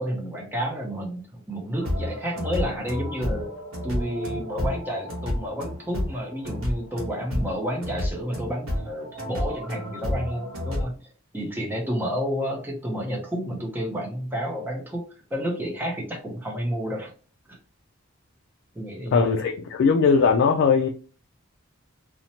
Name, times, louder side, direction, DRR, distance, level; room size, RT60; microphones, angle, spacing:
voice 1, 0.0-3.5 3.8-15.0 15.3-17.1 17.5-17.6 18.7-19.2, equal, 10° right, -1 dB, 0.6 m, -30 dB
sound 1, 1.8-10.8, left 1 dB, 85° right, 0.9 m, -30 dB
voice 2, 19.1-20.9, left 5 dB, 60° left, 3 dB, 0.3 m, -19 dB
2.8 x 2.1 x 2.7 m, 0.38 s
head